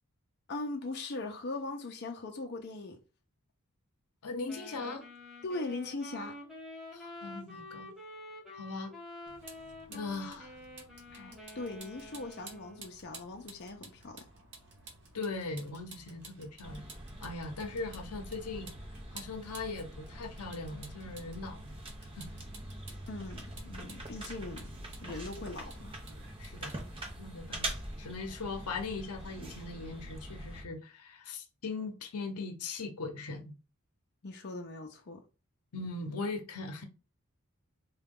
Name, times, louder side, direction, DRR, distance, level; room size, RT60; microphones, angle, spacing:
voice 1, 0.5-3.0 5.4-6.4 11.1-14.3 23.1-24.7 25.0-26.0 34.2-35.2, left 2 dB, 50° left, 0.5 m, -40 dB
voice 2, 4.2-5.1 6.9-7.9 8.5-9.0 9.9-10.6 15.1-16.9 17.2-18.7 19.1-21.8 22.2-22.4 26.4-26.7 27.2-33.5 35.7-36.8, left 3 dB, 85° left, 0.7 m, -40 dB
Wind instrument woodwind instrument, 4.5-13.0, left 1 dB, ahead, 1.2 m, -48 dB
Vehicle, 9.3-27.2, right 3 dB, 50° right, 1.0 m, -54 dB
sound 1, 16.6-30.6, right 1 dB, 25° right, 0.6 m, -44 dB
3.7 x 2.3 x 3.6 m
head